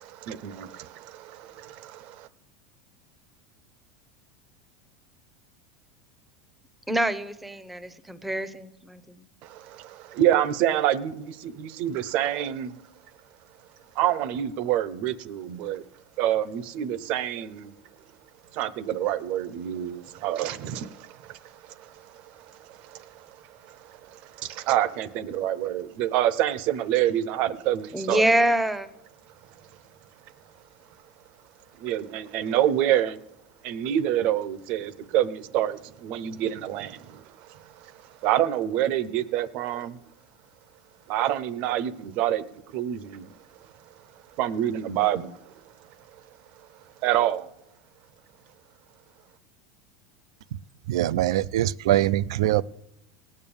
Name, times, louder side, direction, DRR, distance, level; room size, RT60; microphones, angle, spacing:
voice 1, 0.0-2.3 9.4-12.8 14.0-15.8 16.2-17.7 18.5-23.4 23.6-28.2 31.8-33.2 33.6-37.9 38.2-40.0 41.1-43.3 44.4-45.4 47.0-47.5, right 12 dB, 45° right, 0.7 m, -27 dB
voice 2, 6.9-9.2 27.9-28.9, right 1 dB, 5° right, 0.8 m, -26 dB
voice 3, 50.9-52.6, right 13 dB, 80° right, 0.5 m, -23 dB
18.0 x 8.8 x 7.1 m
supercardioid pair, 155°, 3 cm